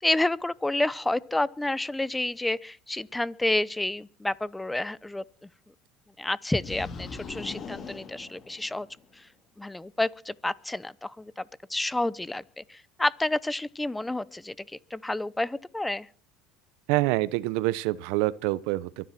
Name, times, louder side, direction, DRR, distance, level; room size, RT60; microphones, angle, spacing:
voice 1, 0.0-5.2 6.2-8.9 9.1-9.3 9.6-11.4 11.7-16.1, left 2 dB, 10° left, 0.8 m, -29 dB
sound 1, 6.6-9.1, left 4 dB, 35° left, 3.7 m, -40 dB
voice 2, 16.9-19.1, right 19 dB, 75° right, 0.9 m, -26 dB
23.5 x 10.5 x 5.9 m
supercardioid pair, 105°, 0 cm